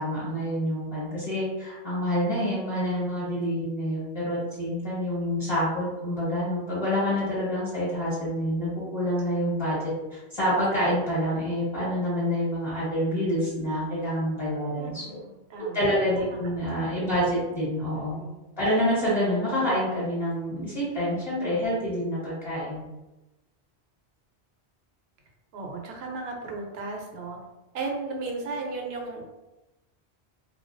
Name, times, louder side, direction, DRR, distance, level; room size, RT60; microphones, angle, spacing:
voice 1, 0.0-15.2 15.7-18.2 18.6-22.9, equal, 40° left, -8 dB, 0.9 m, -27 dB
voice 2, 14.8-15.8 16.2-16.8 17.9-18.4 25.5-27.4 27.7-29.2, right 3 dB, 70° right, 1 dB, 0.8 m, -36 dB
2.3 x 2.2 x 2.5 m, 1.0 s
omnidirectional pair, 1.1 m